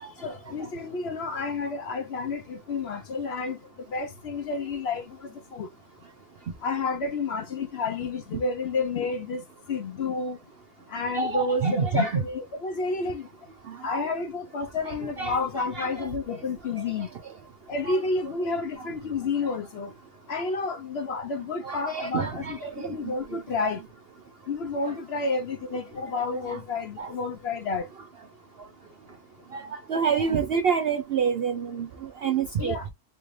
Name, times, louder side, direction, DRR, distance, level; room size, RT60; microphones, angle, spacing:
voice 1, 0.2-3.6 3.9-5.7 6.6-10.4 10.9-13.3 13.8-17.1 17.7-19.9 20.3-23.8 24.5-27.9 32.6-32.9, left 3 dB, 55° left, 0.8 m, -30 dB
voice 2, 11.1-12.2 13.7-13.9 14.9-15.9 16.3-16.4 16.8-16.9 17.9-18.0 21.6-23.4 24.9-25.0 26.5-26.6 27.0-27.1 29.5-32.9, right 6 dB, 80° right, 0.5 m, -28 dB
3.4 x 2.5 x 3.1 m
omnidirectional pair, 1.7 m